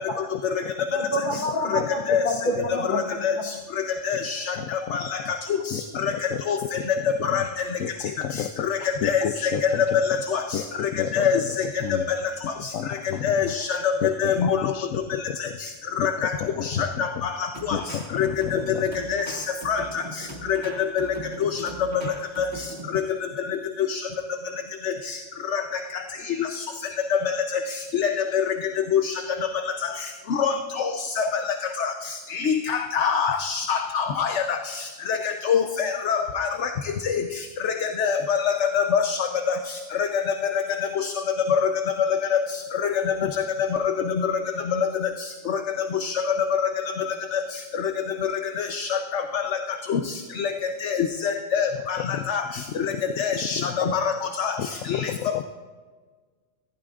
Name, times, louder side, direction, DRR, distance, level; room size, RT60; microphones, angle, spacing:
voice 1, 0.3-0.9 1.7-2.2 4.2-4.3 4.6-5.3 5.7-7.5 7.8-12.1 12.4-13.5 14.0-15.6 16.0-17.3 17.7-18.9 51.7-53.8 54.6-55.4, left 9 dB, 85° left, 9 dB, 1.0 m, -33 dB
voice 2, 0.9-3.5, equal, 40° left, 0 dB, 2.2 m, -28 dB
voice 3, 4.0-4.4 4.9-5.0 6.5-6.6 7.3-7.4 9.0-9.5 10.3-10.4 11.1-11.4 13.2-13.9 14.2-14.6 16.0-16.3 16.6-16.8 18.2-18.6 19.1-19.2 19.7-19.8 20.9-21.1 21.4-21.5 22.4-22.5 23.9-24.0 25.5-25.6 27.1-27.2 27.9-28.4 28.9-29.1 30.4-30.5 30.8-30.9 31.2-31.3 31.8-31.9 32.3-34.3 35.5-35.6 36.1-36.5 37.6-39.2 39.5-39.6 40.1-40.2 44.7-44.9 46.0-46.1 47.3-47.4 48.6-49.2 49.9-50.0 50.4-50.5 50.8-51.0 51.2-52.0 52.3-52.4 53.2-54.0 54.4-54.5 54.9-55.1, left 7 dB, 65° left, 5 dB, 1.1 m, -24 dB
sound 1, 17.5-23.0, right 1 dB, 55° right, 2.1 m, -39 dB
25.0 x 15.5 x 2.5 m, 1.5 s
omnidirectional pair, 1.3 m